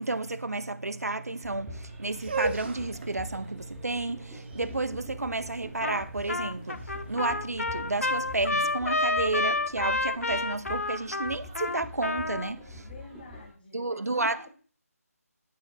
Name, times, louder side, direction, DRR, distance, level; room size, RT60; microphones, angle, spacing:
voice 1, 0.0-12.9 13.7-14.5, right 2 dB, 75° right, 0.6 m, -31 dB
sound 1, 1.4-13.5, left 1 dB, ahead, 1.1 m, -45 dB
sound 2, 2.1-8.0, right 4 dB, 40° right, 0.9 m, -38 dB
Trumpet, 5.8-6.0 6.3-12.5, left 2 dB, 65° left, 0.5 m, -29 dB
voice 2, 12.7-14.5, left 3 dB, 35° left, 1.5 m, -49 dB
12.5 x 4.4 x 2.2 m
figure-of-eight pair, 155°, 8 cm